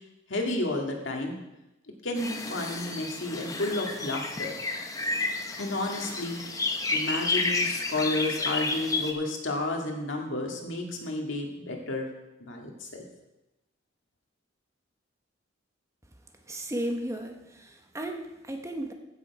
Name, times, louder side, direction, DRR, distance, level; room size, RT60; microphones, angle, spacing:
voice 1, 0.3-1.3 2.0-4.6 5.6-6.4 6.9-12.1 12.4-13.0, left 2 dB, 70° left, 1 dB, 2.0 m, -31 dB
sound 1, 2.2-9.1, left 3 dB, 20° left, 0.9 m, -31 dB
voice 2, 16.5-18.9, right 1 dB, 15° right, 4 dB, 1.0 m, -34 dB
15.5 x 6.9 x 4.7 m, 0.97 s
head